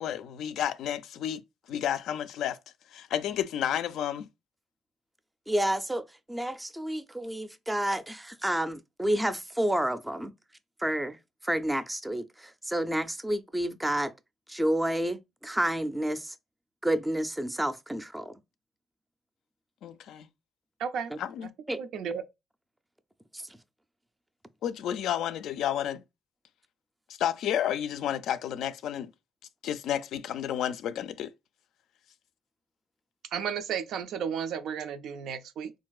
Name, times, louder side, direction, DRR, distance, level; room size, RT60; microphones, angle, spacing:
voice 1, 0.0-1.4 1.7-2.6 2.9-4.3 19.8-20.3 21.2-21.5 24.6-26.0 27.2-29.1 29.6-31.3, left 10 dB, 80° left, 0.4 m, -31 dB
voice 2, 5.5-10.3 10.8-11.2 11.4-14.1 14.5-16.3 16.8-18.3 21.1-21.2 21.7-21.8 23.3-23.4, right 1 dB, 10° right, 0.4 m, -30 dB
voice 3, 20.8-21.1 21.8-22.2 33.3-35.7, right 7 dB, 80° right, 0.4 m, -33 dB
3.6 x 2.6 x 2.3 m
cardioid pair, 90°, 0 cm